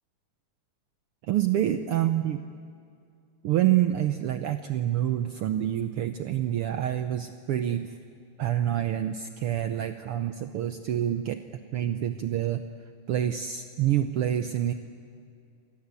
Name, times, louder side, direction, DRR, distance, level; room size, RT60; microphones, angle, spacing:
voice 1, 1.3-2.4 3.4-7.9 8.4-11.4 11.7-12.6 13.1-14.7, right 11 dB, 75° right, 8 dB, 1.3 m, -27 dB
29.0 x 23.5 x 8.3 m, 2.4 s
omnidirectional pair, 3.4 m